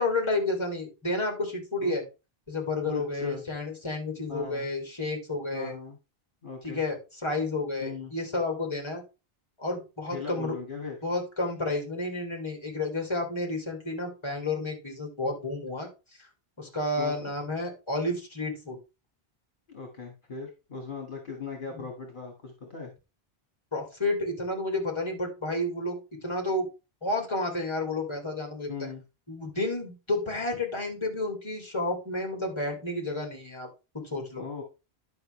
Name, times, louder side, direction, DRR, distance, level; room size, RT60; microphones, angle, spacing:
voice 1, 0.0-2.0 2.5-5.7 6.6-9.0 9.6-10.5 11.0-15.9 16.2-16.3 16.6-18.8 23.7-26.7 27.0-28.7 29.3-33.7 33.9-34.4, left 2 dB, 25° left, 1 dB, 2.8 m, -31 dB
voice 2, 2.9-3.4 4.3-4.7 5.5-6.0 6.4-6.8 7.8-8.1 10.1-11.0 16.9-17.3 19.7-22.9 28.7-29.0 34.4-34.6, left 5 dB, 50° left, 1 dB, 2.0 m, -39 dB
11.0 x 5.7 x 3.2 m, 0.28 s
omnidirectional pair, 1.1 m